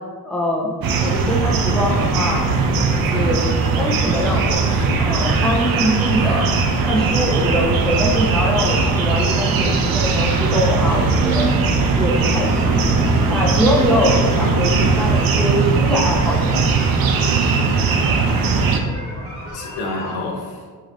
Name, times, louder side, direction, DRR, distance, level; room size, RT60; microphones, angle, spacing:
voice 1, 0.2-0.7 1.0-2.5 2.9-3.4 3.8-4.7 5.0-6.5 6.9-11.5 12.0-12.9 13.3-16.7, equal, ahead, -2 dB, 0.6 m, -23 dB
sound 1, 0.8-20.2, equal, 45° left, 1.3 m, -35 dB
sound 2, 0.8-18.8, right 4 dB, 70° right, 0.5 m, -19 dB
voice 2, 14.4-14.8 16.1-16.7 19.5-20.7, left 2 dB, 80° left, 1 dB, 0.7 m, -31 dB
3.8 x 2.6 x 3.3 m, 1.5 s
cardioid pair, 100°, 36 cm